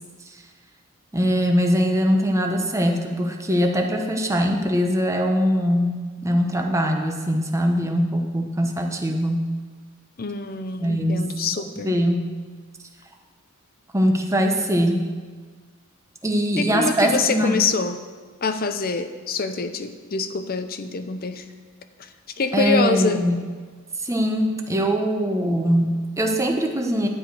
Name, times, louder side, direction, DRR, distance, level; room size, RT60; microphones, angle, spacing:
voice 1, 1.1-6.0 6.2-9.5 10.8-12.3 13.9-15.1 16.2-17.6 22.5-23.4 24.0-27.1, equal, 15° right, 3 dB, 0.9 m, -22 dB
voice 2, 10.2-12.0 16.6-18.0 18.4-21.4 22.0-22.1 22.4-23.2, left 4 dB, 45° left, 9 dB, 0.7 m, -25 dB
11.5 x 4.9 x 7.9 m, 1.5 s
head